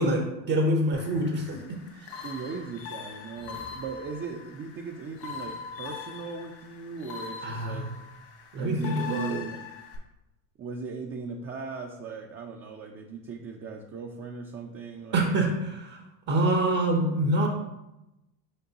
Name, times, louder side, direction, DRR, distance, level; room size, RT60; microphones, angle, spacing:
voice 1, 0.0-2.3 7.4-7.8 8.5-9.4 15.1-16.0 16.3-17.5, right 1 dB, 50° right, 1 dB, 1.1 m, -26 dB
sound 1, 0.9-10.0, left 6 dB, 70° left, 1.7 m, -42 dB
voice 2, 2.2-7.9 8.6-9.7 10.6-15.2, right 5 dB, 30° right, 2 dB, 0.6 m, -38 dB
6.6 x 5.1 x 2.9 m, 0.94 s
supercardioid pair, 90°, 43 cm